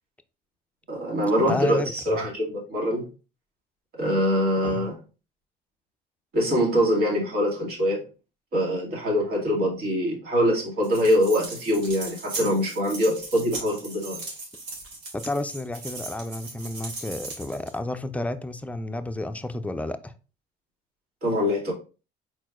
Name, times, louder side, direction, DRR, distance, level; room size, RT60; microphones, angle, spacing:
voice 1, 0.9-3.1 4.0-4.9 6.3-8.0 8.5-14.2 21.2-21.7, equal, 65° right, 2.3 m, -24 dB
voice 2, 1.5-2.2 4.6-4.9 15.1-20.1, left 2 dB, 10° left, 0.4 m, -31 dB
sound 1, 10.8-17.8, right 3 dB, 85° right, 1.9 m, -38 dB
4.4 x 4.4 x 2.4 m
cardioid pair, 110°, 17 cm